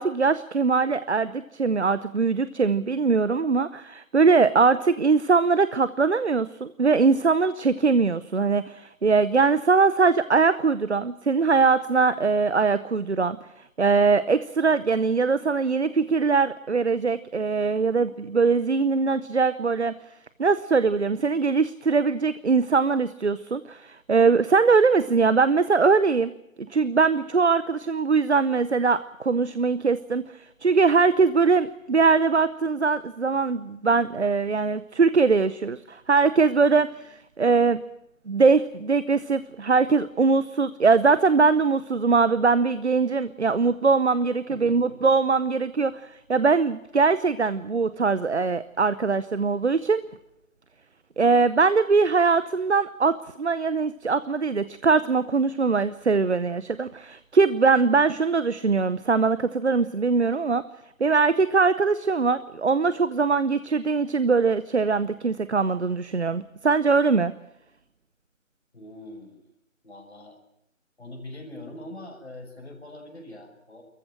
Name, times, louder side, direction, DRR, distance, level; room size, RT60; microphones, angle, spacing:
voice 1, 0.0-19.9 20.4-26.3 26.7-37.8 38.3-50.0 51.2-60.6 61.0-67.3, right 4 dB, 55° right, 15 dB, 0.8 m, -22 dB
voice 2, 44.5-45.0 68.7-69.5 69.8-70.4 71.0-73.8, left 1 dB, 50° left, 2 dB, 6.4 m, -42 dB
26.0 x 14.5 x 8.8 m, 0.83 s
figure-of-eight pair, 175°, 41 cm